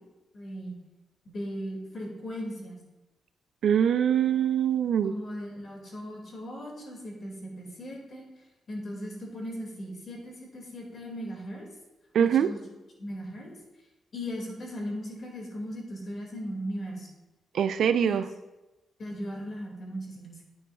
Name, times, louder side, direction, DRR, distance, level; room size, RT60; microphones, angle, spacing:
voice 1, 0.3-0.8 1.3-2.8 5.0-8.3 8.7-11.7 12.2-12.6 13.0-13.5 14.1-17.1 18.0-18.2 19.0-20.4, equal, 40° left, -1 dB, 2.0 m, -37 dB
voice 2, 3.6-5.1 12.1-12.5 17.5-18.3, right 8 dB, 65° right, 12 dB, 0.3 m, -23 dB
9.4 x 9.4 x 2.3 m, 1.0 s
wide cardioid pair, 165°, 0 cm